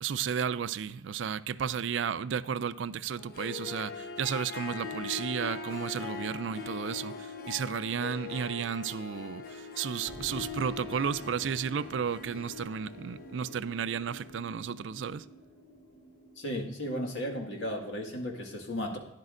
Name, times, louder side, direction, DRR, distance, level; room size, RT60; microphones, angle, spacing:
voice 1, 0.0-15.2, right 7 dB, 85° right, 0.4 m, -33 dB
Harp, 3.2-14.4, left 5 dB, 50° left, 0.9 m, -41 dB
sound 1, 10.1-17.0, equal, 30° left, 2.9 m, -50 dB
voice 2, 16.4-19.0, equal, 85° left, 1.9 m, -35 dB
12.0 x 10.5 x 2.5 m
head